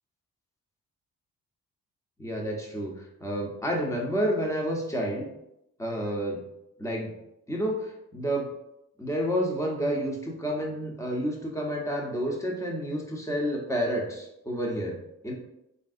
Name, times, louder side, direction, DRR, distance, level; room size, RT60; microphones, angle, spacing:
voice 1, 2.2-2.9 3.2-5.3 5.8-6.4 6.8-7.1 7.5-8.5 9.0-15.0 15.2-15.3, equal, 10° left, -1 dB, 0.8 m, -29 dB
3.2 x 2.7 x 2.4 m, 0.84 s
cardioid pair, 55°, 35 cm